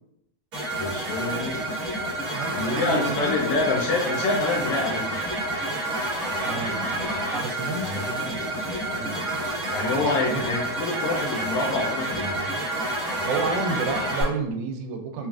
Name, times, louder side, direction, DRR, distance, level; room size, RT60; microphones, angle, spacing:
sound 1, 0.5-14.2, right 1 dB, 55° right, 0.9 m, -29 dB
voice 1, 0.8-1.6 2.5-5.3 7.8-8.1 9.7-12.5, left 3 dB, 80° left, 0 dB, 1.7 m, -27 dB
voice 2, 2.3-3.6 6.4-9.6 10.3-10.5 13.2-15.3, right 3 dB, 85° right, 5 dB, 2.0 m, -31 dB
5.5 x 2.4 x 2.3 m, 0.80 s
omnidirectional pair, 3.5 m